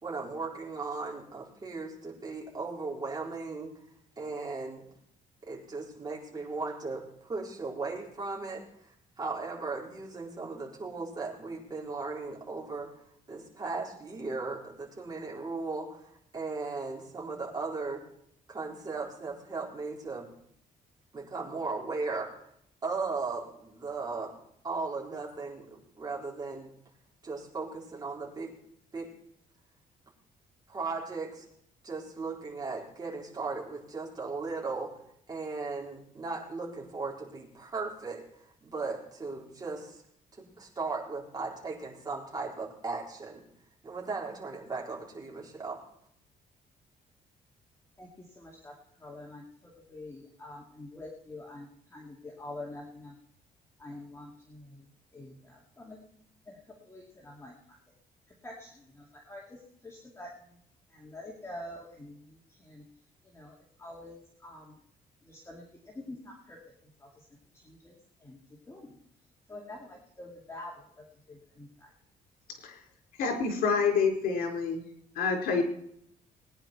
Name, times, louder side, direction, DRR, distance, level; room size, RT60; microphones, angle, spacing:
voice 1, 0.0-3.7 4.2-4.8 5.4-8.9 9.2-12.9 13.3-18.0 18.5-20.3 21.1-22.3 22.8-24.3 24.6-26.7 27.2-28.5 28.9-29.1 30.7-31.5 31.8-34.9 35.3-38.2 38.6-40.0 40.4-43.4 43.8-45.8, right 3 dB, 25° right, -2 dB, 4.2 m, -37 dB
voice 2, 48.0-53.2 53.8-56.0 56.5-57.5 58.4-60.6 60.9-62.8 63.2-64.8 65.2-67.2 67.5-68.4 68.7-69.0 69.5-71.9, left 2 dB, 15° left, -2 dB, 2.3 m, -47 dB
voice 3, 73.2-74.8 75.2-75.6, left 5 dB, 80° left, 3 dB, 4.3 m, -27 dB
19.5 x 10.0 x 4.5 m, 0.69 s
cardioid pair, 130°, 15 cm